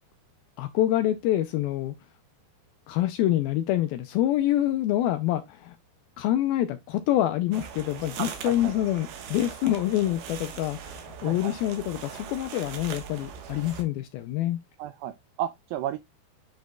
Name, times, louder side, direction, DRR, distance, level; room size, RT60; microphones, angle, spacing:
voice 1, 0.6-1.9 2.9-5.8 6.2-14.6, left 13 dB, 80° left, 2.2 m, -26 dB
sound 1, 7.5-13.8, right 7 dB, 70° right, 3.0 m, -40 dB
voice 2, 8.2-8.7 11.2-11.5 14.8-16.0, right 11 dB, 85° right, 2.1 m, -33 dB
10.0 x 5.2 x 2.3 m
omnidirectional pair, 4.8 m